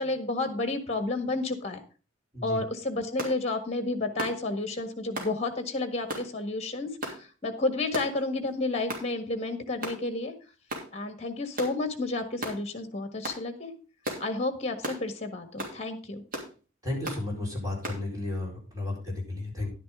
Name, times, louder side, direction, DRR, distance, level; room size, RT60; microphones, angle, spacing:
voice 1, 0.0-1.8 2.4-10.3 10.9-13.7 14.2-16.2, left 2 dB, 35° left, 8 dB, 1.6 m, -31 dB
sound 1, 3.2-3.4 4.2-4.4 5.2-5.3 6.1-6.3 7.0-7.2 7.9-8.2 8.9-9.1 9.8-10.0 10.7-10.9 11.6-11.8 12.4-12.6 13.2-13.4 14.0-14.3 14.8-15.0 15.6-15.8 16.3-16.5 17.0-17.2 17.8-18.0, right 1 dB, 45° right, 3.0 m, -35 dB
voice 2, 16.8-19.7, left 2 dB, 20° right, -2 dB, 4.4 m, -33 dB
11.0 x 10.0 x 3.7 m, 0.33 s
head